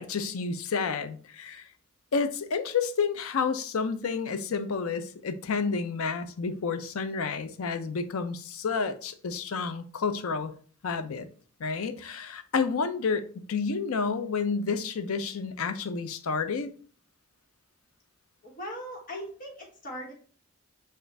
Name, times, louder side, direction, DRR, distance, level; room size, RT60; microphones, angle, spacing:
voice 1, 0.0-1.7 2.1-10.5 10.8-11.3 11.6-16.7, left 5 dB, 75° left, 0.5 m, -30 dB
voice 2, 18.4-20.1, equal, 40° left, 1.3 m, -39 dB
6.5 x 2.5 x 3.2 m
head